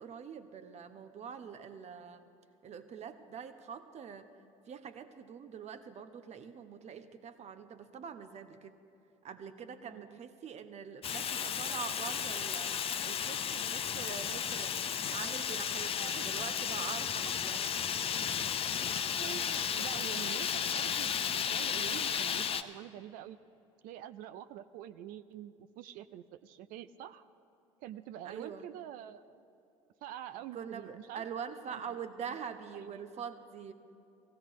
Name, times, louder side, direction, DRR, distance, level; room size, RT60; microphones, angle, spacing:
voice 1, 0.0-2.3 2.6-4.3 4.7-8.7 9.2-12.7 13.0-14.8 15.1-16.0 16.2-17.6 28.2-28.7 30.5-33.7, right 7 dB, 40° right, 10 dB, 1.0 m, -44 dB
voice 2, 9.8-10.2 15.9-16.3 19.1-23.4 23.8-27.2 27.8-29.4 30.0-31.3 31.7-32.4 32.7-33.1, right 11 dB, 60° right, 12 dB, 0.5 m, -46 dB
Fire, 11.0-22.6, left 8 dB, 35° left, 0.7 m, -34 dB
18.0 x 16.0 x 3.7 m, 2.8 s
hypercardioid pair, 65°, 17 cm